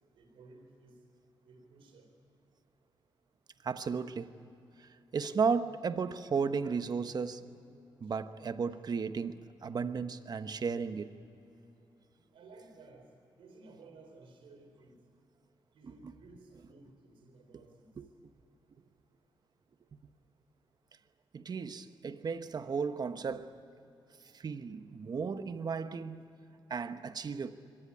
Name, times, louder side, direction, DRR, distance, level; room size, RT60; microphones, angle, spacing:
voice 1, 0.1-1.0 1.4-2.1 12.3-13.1 13.4-14.9 15.7-17.9, right 3 dB, 85° right, 4.1 m, -56 dB
voice 2, 3.6-4.3 4.8-7.5 8.0-11.2 18.0-18.1 21.3-23.5 24.3-26.2 26.7-27.5, right 5 dB, 50° right, 1.1 m, -34 dB
23.5 x 19.0 x 9.8 m
cardioid pair, 80°, 9 cm